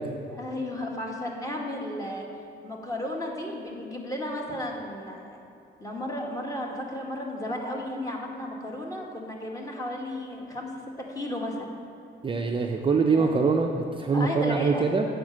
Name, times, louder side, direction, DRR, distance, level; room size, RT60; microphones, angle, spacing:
voice 1, 0.3-2.3 2.6-5.4 5.8-10.7 11.1-11.7 13.1-13.4 14.1-14.8, left 1 dB, 15° left, -1 dB, 1.6 m, -33 dB
voice 2, 12.2-15.1, right 4 dB, 25° right, 2 dB, 0.6 m, -24 dB
7.7 x 5.1 x 7.3 m, 2.8 s
cardioid pair, 90°, 20 cm